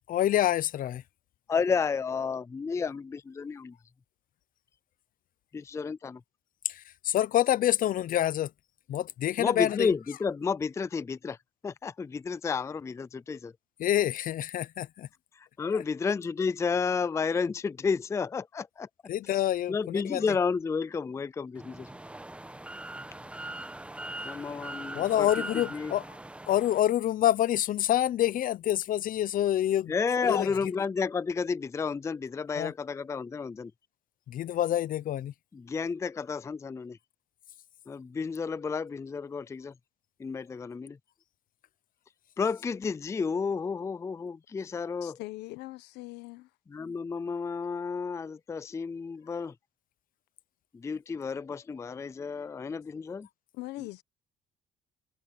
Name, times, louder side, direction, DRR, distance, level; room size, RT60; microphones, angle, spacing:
voice 1, 0.1-1.0 6.6-8.5 8.9-9.9 13.8-15.1 19.1-20.2 24.9-26.0 26.5-29.9 30.2-30.5 32.6-32.7 34.3-35.3, left 12 dB, 55° left, 0.7 m, -27 dB
voice 2, 1.5-3.7 5.5-6.2 9.4-11.4 11.6-13.5 15.6-18.9 19.7-21.9 24.2-25.5 25.7-25.9 29.9-33.7 35.5-37.0 37.9-39.7 40.2-41.0 42.4-45.2 46.7-49.5 50.7-53.3, left 5 dB, 15° left, 0.4 m, -31 dB
sound 1, 21.6-26.8, right 1 dB, 5° right, 1.2 m, -41 dB
voice 3, 45.0-46.5 53.5-54.0, left 18 dB, 90° left, 1.1 m, -41 dB
cardioid pair, 110°, 17 cm